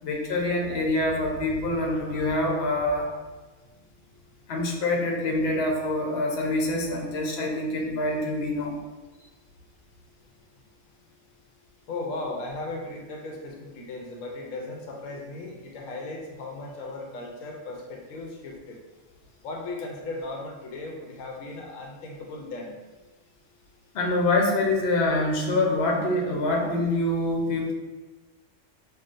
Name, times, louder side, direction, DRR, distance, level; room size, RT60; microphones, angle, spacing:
voice 1, 0.0-3.1 4.5-8.8 23.9-27.7, left 2 dB, 60° left, 0 dB, 0.9 m, -25 dB
voice 2, 11.9-18.8 19.4-22.8, left 2 dB, 85° left, 0 dB, 1.0 m, -37 dB
5.8 x 2.3 x 2.5 m, 1.2 s
omnidirectional pair, 1.3 m